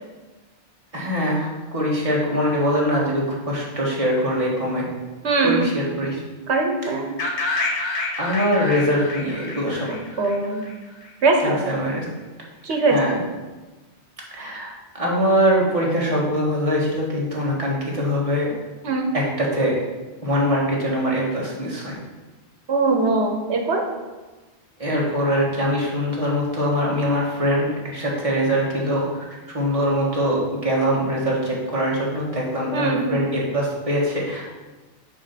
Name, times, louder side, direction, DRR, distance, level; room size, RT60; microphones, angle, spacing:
voice 1, 0.9-4.9 5.4-6.2 8.2-9.9 11.4-12.1 12.9-13.2 14.3-18.5 19.1-19.7 20.2-21.9 24.8-27.7 27.9-34.5, equal, 30° right, -4 dB, 1.8 m, -23 dB
voice 2, 5.2-5.7 6.5-7.1 10.2-10.6 11.2-11.6 12.6-13.0 18.8-19.0 22.7-23.8 32.7-33.2, right 3 dB, 80° right, 3 dB, 1.3 m, -21 dB
sound 1, 7.2-11.1, left 2 dB, 90° left, 1.3 m, -28 dB
6.6 x 4.3 x 5.8 m, 1.2 s
omnidirectional pair, 1.1 m